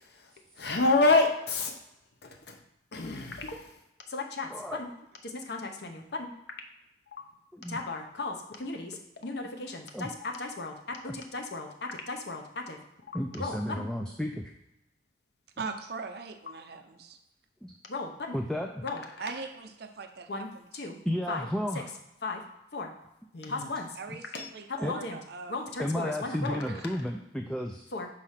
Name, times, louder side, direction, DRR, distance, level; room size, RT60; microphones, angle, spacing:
voice 1, 0.6-1.8 2.2-2.6 2.9-3.7 4.1-4.5 4.8-4.9 5.2-6.3 7.7-12.8 13.4-13.9 17.9-18.4 18.8-19.0 20.3-20.5 20.7-21.0 21.3-21.5 22.2-22.4 22.7-22.9 23.3-23.9 24.3-24.5 24.8-25.2 25.5-26.6 27.9-28.1, left 3 dB, 70° left, 3 dB, 0.9 m, -31 dB
voice 2, 4.5-4.8 7.5-7.8 9.9-10.1 11.1-11.2 13.1-14.5 17.6-17.7 18.3-18.8 21.0-21.9 23.4-23.6 24.8-25.0 25.8-27.9, equal, 5° left, 2 dB, 0.4 m, -33 dB
voice 3, 15.6-17.2 19.2-20.7 24.0-25.7 26.5-26.9, right 4 dB, 65° right, 6 dB, 0.7 m, -41 dB
4.9 x 4.3 x 5.7 m, 0.88 s
head